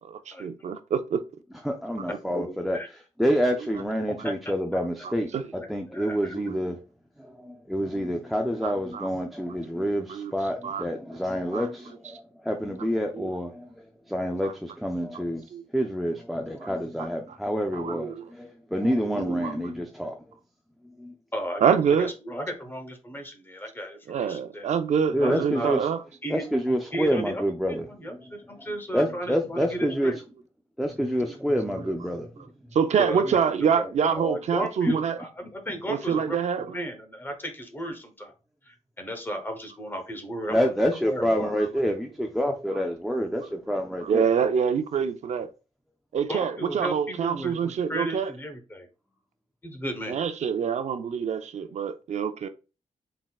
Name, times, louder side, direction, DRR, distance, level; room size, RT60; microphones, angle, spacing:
voice 1, 0.0-1.2 3.8-3.9 4.2-4.3 5.0-5.4 6.3-6.6 8.6-9.1 10.1-10.9 11.5-11.7 12.0-12.2 13.1-13.3 14.4-14.5 15.5-15.6 16.6-16.7 17.0-17.4 17.7-18.3 19.0-19.7 21.6-22.1 24.1-26.0 31.8-32.1 32.7-35.2 35.9-36.9 42.7-42.8 44.0-45.5 46.1-48.3 50.0-52.5, right 7 dB, 65° right, 0.4 m, -26 dB
voice 2, 1.6-2.8 3.2-6.8 7.2-20.4 21.0-21.1 25.1-25.9 26.3-27.9 28.1-30.1 30.8-32.4 40.5-44.3, equal, ahead, 0.4 m, -28 dB
voice 3, 2.2-2.9 4.2-4.3 5.9-6.3 21.3-24.7 25.2-25.7 26.2-26.4 26.9-27.4 27.7-30.2 33.0-38.3 38.7-40.7 41.0-41.5 46.3-48.9 49.6-50.2, equal, 15° left, 0.9 m, -34 dB
4.0 x 3.6 x 2.3 m
wide cardioid pair, 155°, 13 cm